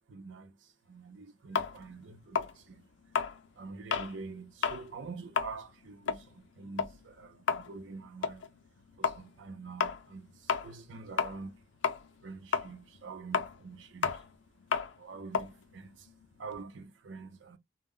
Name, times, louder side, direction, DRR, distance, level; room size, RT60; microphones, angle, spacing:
voice 1, 0.1-2.8 3.6-8.5 9.0-11.6 12.2-14.3 15.0-16.1 16.4-17.6, right 4 dB, 80° right, 0.6 m, -46 dB
sound 1, 1.5-4.2 4.5-4.9 5.2-11.6 11.8-16.6, left 6 dB, 70° left, 0.5 m, -33 dB
2.1 x 2.1 x 3.5 m
head